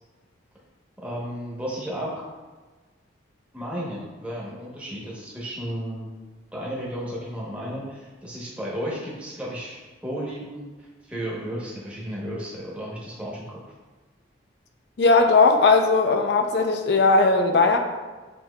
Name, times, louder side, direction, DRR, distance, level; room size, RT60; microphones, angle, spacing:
voice 1, 1.0-2.2 3.5-6.1 6.5-13.6, equal, 5° right, -6 dB, 0.8 m, -33 dB
voice 2, 15.0-17.8, left 3 dB, 55° left, 5 dB, 0.4 m, -18 dB
6.6 x 2.8 x 2.2 m, 1.3 s
head